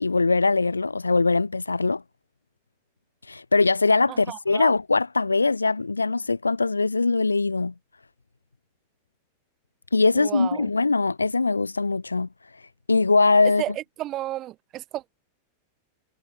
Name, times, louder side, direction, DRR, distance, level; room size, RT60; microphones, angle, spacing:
voice 1, 0.0-2.0 3.3-7.7 9.9-12.3 12.9-13.6, left 3 dB, 80° left, 2.9 m, -21 dB
voice 2, 4.1-4.7 10.1-10.7 13.4-15.1, right 14 dB, 35° right, 6.7 m, -33 dB
figure-of-eight pair, 90°, 0 cm